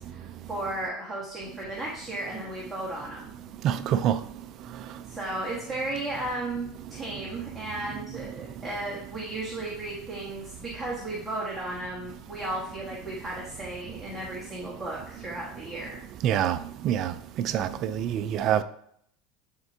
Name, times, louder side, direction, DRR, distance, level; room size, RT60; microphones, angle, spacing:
voice 1, 0.0-3.3 5.0-16.0 17.5-17.8, right 2 dB, ahead, 1.5 m, -35 dB
voice 2, 3.6-4.2 16.2-16.6 16.8-18.6, right 10 dB, 40° right, 0.4 m, -26 dB
10.5 x 4.4 x 2.8 m
supercardioid pair, 150°, 0 cm